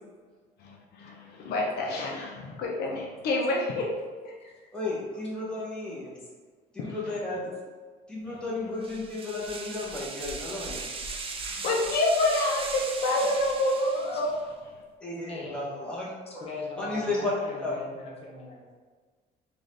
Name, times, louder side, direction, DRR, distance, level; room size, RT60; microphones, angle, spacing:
voice 1, 0.6-3.9 4.2-4.3 6.8-7.2 8.3-8.4 11.5-14.4, left 2 dB, 70° left, -1 dB, 0.7 m, -28 dB
voice 2, 4.7-6.1 6.7-7.5 8.1-10.9 15.0-16.4 16.8-17.3 17.6-17.7, left 2 dB, 5° left, -7 dB, 1.2 m, -33 dB
sound 1, 8.8-14.4, right 4 dB, 35° right, 0.5 m, -38 dB
voice 3, 13.9-14.3 15.2-15.6 16.3-18.6, left 2 dB, 35° left, -2 dB, 0.8 m, -40 dB
3.8 x 2.6 x 3.3 m, 1.5 s
cardioid pair, 110°, 17 cm